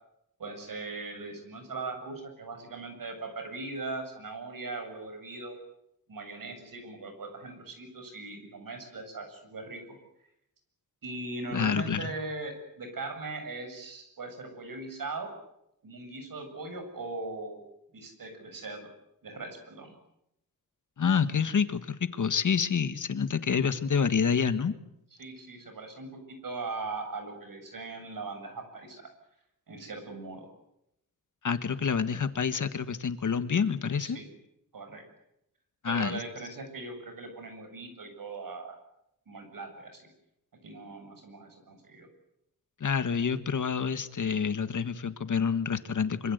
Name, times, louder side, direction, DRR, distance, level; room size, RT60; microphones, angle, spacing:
voice 1, 0.4-5.6 6.1-10.0 11.0-15.3 15.8-17.6 17.9-18.9 19.2-20.0 22.7-22.8 25.1-29.1 29.7-30.5 34.0-34.3 34.7-35.1 35.9-38.8 39.3-40.1 40.6-42.1, right 3 dB, 65° right, 6 dB, 7.6 m, -40 dB
voice 2, 11.5-12.1 21.0-24.8 31.4-34.2 35.8-36.2 42.8-46.3, left 6 dB, 55° left, 11 dB, 1.7 m, -28 dB
25.5 x 25.5 x 8.2 m, 0.81 s
wide cardioid pair, 170°, 35 cm